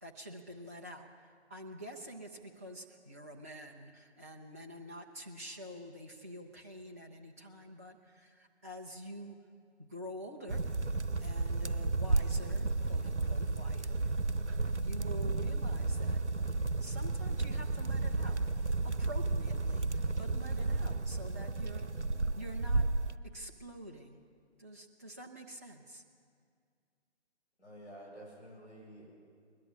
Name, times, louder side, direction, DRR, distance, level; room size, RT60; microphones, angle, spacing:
voice 1, 0.0-9.4 9.8-10.6 11.2-14.1 14.6-16.2 16.5-21.9 22.4-22.9 23.3-24.2 24.6-26.0, equal, 15° right, -1 dB, 0.4 m, -47 dB
sound 1, 10.5-23.1, right 3 dB, 90° right, 0.8 m, -32 dB
voice 2, 27.6-29.0, equal, 85° left, -4 dB, 7.7 m, -50 dB
21.0 x 21.0 x 6.2 m, 2.2 s
figure-of-eight pair, 140°, 34 cm